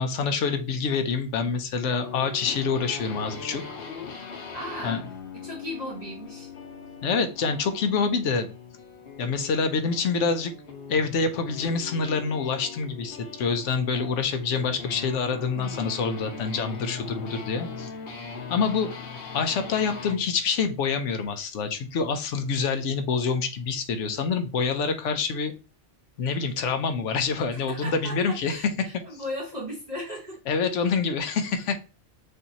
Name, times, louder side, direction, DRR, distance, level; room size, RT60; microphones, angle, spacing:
voice 1, 0.0-3.6 4.8-5.0 7.0-8.5 9.2-10.5 10.9-17.9 18.5-18.9 19.3-25.5 26.2-28.9 30.5-31.8, left 5 dB, 90° left, 8 dB, 1.0 m, -26 dB
sound 1, 2.0-20.2, left 5 dB, 60° left, 0.9 m, -40 dB
voice 2, 4.5-5.0 5.4-6.5 15.6-16.0 27.5-30.4, equal, 35° right, -6 dB, 1.2 m, -37 dB
6.6 x 2.7 x 2.8 m, 0.32 s
omnidirectional pair, 1.2 m